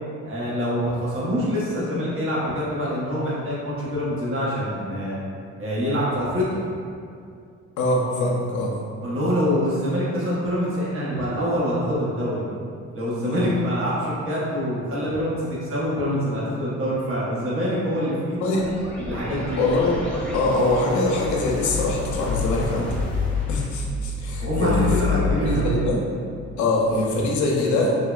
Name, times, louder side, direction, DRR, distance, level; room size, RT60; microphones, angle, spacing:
voice 1, 0.2-5.2 5.6-6.6 9.0-12.4 12.9-18.6 19.1-19.6 24.4-25.7, equal, 45° right, -7 dB, 0.9 m, -25 dB
voice 2, 7.8-8.8 13.2-13.5 18.4-18.6 19.6-20.0 20.3-22.9 23.5-24.9 25.4-26.0 26.6-28.0, left 2 dB, 75° left, -2 dB, 0.6 m, -23 dB
sound 1, 18.5-25.3, left 4 dB, 5° left, 0.6 m, -28 dB
3.5 x 2.0 x 2.3 m, 2.3 s
cardioid pair, 90°, 30 cm